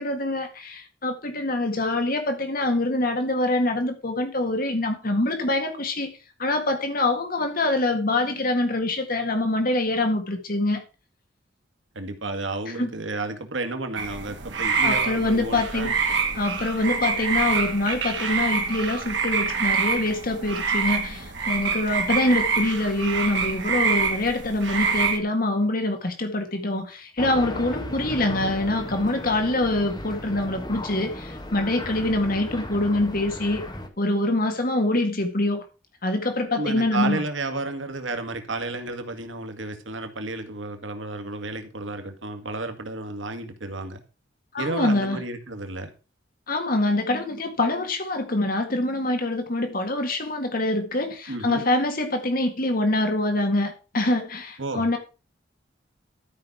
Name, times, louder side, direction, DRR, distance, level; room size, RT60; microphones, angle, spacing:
voice 1, 0.0-6.1 6.4-10.8 12.8-12.9 14.8-15.9 16.3-33.6 34.0-35.6 36.0-37.2 44.5-45.2 46.5-55.0, left 2 dB, 50° left, 1.8 m, -25 dB
voice 2, 11.9-15.9 36.5-44.0 44.6-45.9 51.3-51.6 54.6-54.9, right 2 dB, 90° right, 1.8 m, -32 dB
sound 1, 14.0-25.2, right 5 dB, 70° right, 2.1 m, -26 dB
sound 2, 27.2-33.9, left 1 dB, 25° left, 1.5 m, -36 dB
13.0 x 5.4 x 6.0 m
head